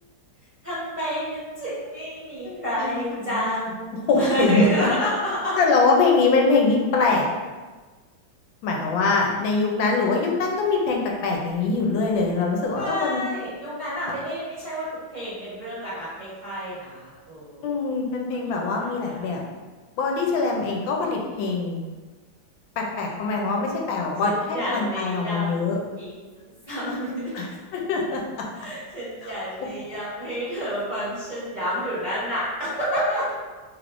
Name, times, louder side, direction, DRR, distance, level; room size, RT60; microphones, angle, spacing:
voice 1, 0.6-5.6 12.8-17.8 18.3-19.2 24.2-27.3 28.5-33.3, equal, 30° right, -11 dB, 1.0 m, -29 dB
voice 2, 2.4-2.9 3.2-3.5 4.1-4.6 5.6-7.3 8.6-13.2 17.6-19.4 20.0-21.8 22.8-25.8 27.3-28.4 29.2-29.3, left 4 dB, 80° left, 0 dB, 1.3 m, -23 dB
3.4 x 3.3 x 2.5 m, 1.3 s
omnidirectional pair, 2.1 m